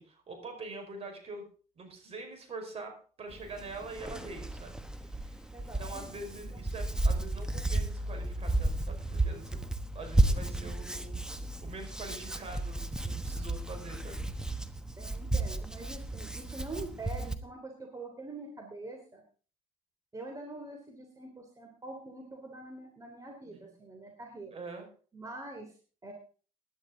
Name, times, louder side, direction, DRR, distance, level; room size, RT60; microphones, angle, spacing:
voice 1, 0.0-1.5 1.8-5.5 5.8-9.6 9.9-11.2 11.6-14.3 23.5-23.7 24.5-24.9, right 3 dB, 45° right, 5 dB, 4.9 m, -44 dB
Hands, 3.3-17.4, right 2 dB, 5° right, 1.2 m, -33 dB
voice 2, 5.5-6.2 6.5-6.6 15.0-19.2 20.1-24.6 25.1-25.7 26.0-26.1, right 2 dB, 25° right, 2 dB, 3.1 m, -44 dB
17.0 x 10.5 x 3.8 m, 0.39 s
cardioid pair, 95°, 14 cm